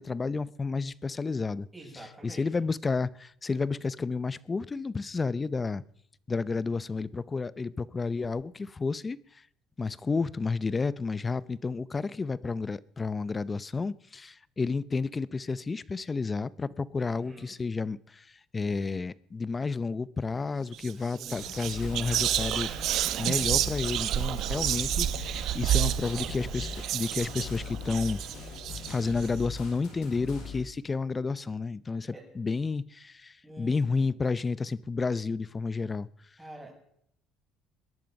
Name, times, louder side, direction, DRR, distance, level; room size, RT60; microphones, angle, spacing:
voice 1, 0.0-1.7 2.2-5.8 6.3-9.2 9.8-22.7 23.2-28.2 28.9-36.1, left 4 dB, 25° left, 0.7 m, -31 dB
voice 2, 1.7-2.7 17.0-17.6 21.0-21.6 32.1-32.3 33.4-34.1 36.4-36.7, right 1 dB, 10° right, 7.6 m, -48 dB
Whispering, 20.7-20.9 21.2-29.3, right 12 dB, 65° right, 0.9 m, -30 dB
sound 1, 21.4-30.6, left 5 dB, 70° left, 6.2 m, -41 dB
21.5 x 11.0 x 5.3 m
cardioid pair, 100°, 0 cm